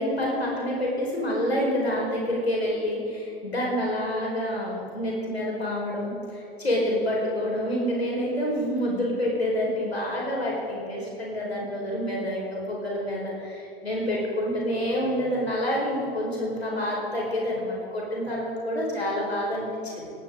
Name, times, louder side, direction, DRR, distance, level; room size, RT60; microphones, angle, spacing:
voice 1, 0.0-20.1, equal, 80° left, -3 dB, 4.7 m, -28 dB
19.0 x 18.0 x 3.8 m, 2.7 s
figure-of-eight pair, 90°, 31 cm